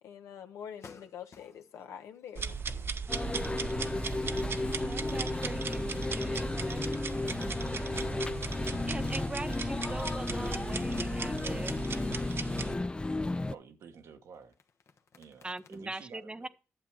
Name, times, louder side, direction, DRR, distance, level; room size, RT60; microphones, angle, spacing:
voice 1, 0.0-2.6, left 8 dB, 90° left, 1.1 m, -45 dB
sound 1, 0.8-1.8 2.2-4.1 4.4-5.1 5.4-10.3 10.8-11.3 11.5-11.9 14.3-15.8, left 6 dB, 65° left, 1.1 m, -57 dB
sound 2, 2.4-12.7, right 5 dB, 50° right, 0.7 m, -38 dB
sound 3, 3.1-13.5, left 2 dB, 20° left, 0.4 m, -34 dB
voice 2, 4.6-11.9 15.4-16.5, right 2 dB, 20° right, 0.8 m, -43 dB
voice 3, 13.5-14.6 15.1-16.5, right 6 dB, 85° right, 1.2 m, -51 dB
11.5 x 7.3 x 4.6 m
cardioid pair, 60°, 5 cm